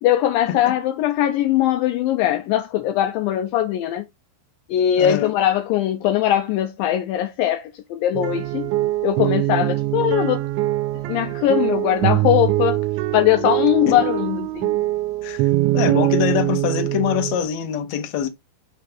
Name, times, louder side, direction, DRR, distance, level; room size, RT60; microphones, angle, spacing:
voice 1, 0.0-4.0 4.7-8.7 9.0-10.4 11.1-12.8 13.1-14.7, left 12 dB, 80° left, 2.2 m, -20 dB
voice 2, 5.0-5.3 13.9-14.0 15.2-18.3, left 10 dB, 65° left, 1.9 m, -24 dB
sound 1, 8.1-17.5, right 17 dB, 85° right, 2.5 m, -22 dB
5.9 x 3.2 x 5.7 m
omnidirectional pair, 4.4 m